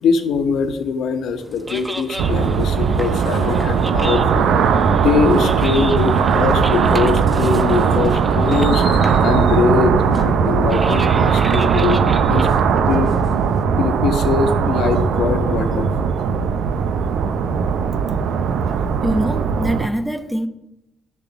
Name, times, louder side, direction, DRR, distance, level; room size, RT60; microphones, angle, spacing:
voice 1, 0.0-4.5 4.9-12.0 12.3-12.5 12.9-13.1 13.8-15.9, left 6 dB, 70° left, 1.1 m, -22 dB
sound 1, 1.4-13.6, right 1 dB, 20° right, 1.2 m, -34 dB
sound 2, 2.2-19.9, right 6 dB, 70° right, 0.7 m, -18 dB
voice 2, 19.0-20.5, equal, ahead, 1.3 m, -23 dB
10.5 x 6.8 x 5.9 m
hypercardioid pair, 40°, 0 cm